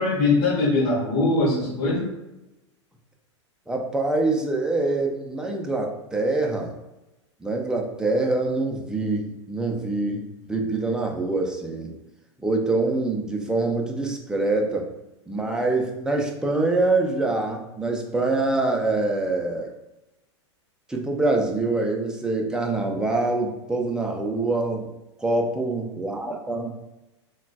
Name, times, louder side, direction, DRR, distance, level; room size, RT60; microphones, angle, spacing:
voice 1, 0.0-2.1, left 3 dB, 55° left, -4 dB, 1.1 m, -21 dB
voice 2, 3.7-6.7 7.4-10.2 10.5-11.9 12.4-14.9 15.3-19.7 20.9-24.9 25.2-26.7, right 2 dB, 5° right, 0 dB, 0.4 m, -25 dB
3.8 x 2.3 x 2.3 m, 0.98 s
hypercardioid pair, 105°, 15 cm